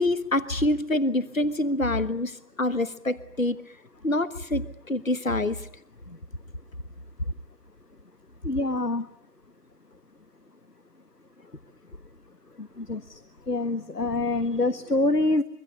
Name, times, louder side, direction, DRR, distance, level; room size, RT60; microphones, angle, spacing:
voice 1, 0.0-3.6 4.0-5.7 6.1-6.2, left 1 dB, 55° left, 14 dB, 1.4 m, -26 dB
voice 2, 8.4-9.1 12.6-15.4, left 2 dB, 75° left, 12 dB, 1.6 m, -26 dB
25.5 x 24.0 x 8.3 m, 0.67 s
figure-of-eight pair, 175°, 47 cm